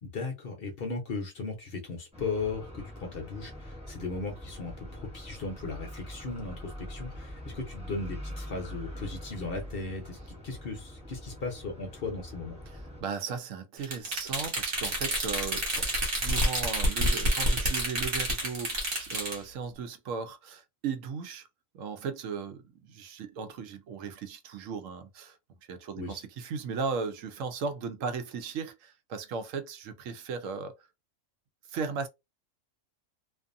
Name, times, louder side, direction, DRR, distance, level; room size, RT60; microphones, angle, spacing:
voice 1, 0.0-10.2 10.4-12.6 26.0-26.2, left 3 dB, 50° left, 0.8 m, -37 dB
sound 1, 2.1-13.0, equal, 5° right, 0.8 m, -43 dB
voice 2, 12.7-15.9 16.1-21.5 21.7-25.4 25.7-30.7 31.7-32.1, right 5 dB, 75° right, 0.9 m, -36 dB
sound 2, 13.8-19.4, right 1 dB, 45° right, 1.2 m, -29 dB
2.5 x 2.4 x 2.5 m
omnidirectional pair, 1.4 m